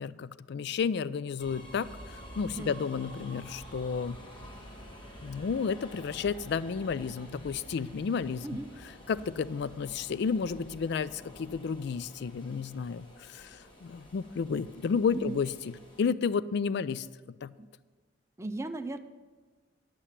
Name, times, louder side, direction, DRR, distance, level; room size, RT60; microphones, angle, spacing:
voice 1, 0.0-4.2 5.2-8.5 9.1-17.1 17.4-17.5, left 6 dB, 60° left, 17 dB, 0.3 m, -32 dB
sound 1, 1.4-16.0, equal, 25° left, 1.2 m, -49 dB
voice 2, 18.4-19.0, right 2 dB, 15° right, 7 dB, 0.5 m, -36 dB
10.0 x 8.3 x 5.8 m, 1.4 s
head